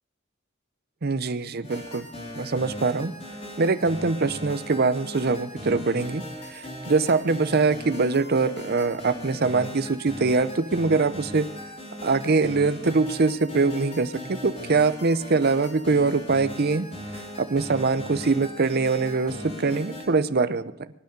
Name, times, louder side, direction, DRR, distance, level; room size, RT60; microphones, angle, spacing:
voice 1, 1.0-2.1 2.3-3.1 3.6-6.2 6.5-11.5 12.0-16.9 17.4-20.7, right 4 dB, 50° right, 13 dB, 0.7 m, -23 dB
sound 1, 1.6-20.1, equal, 30° left, 4.5 m, -39 dB
23.5 x 9.3 x 5.3 m, 0.82 s
head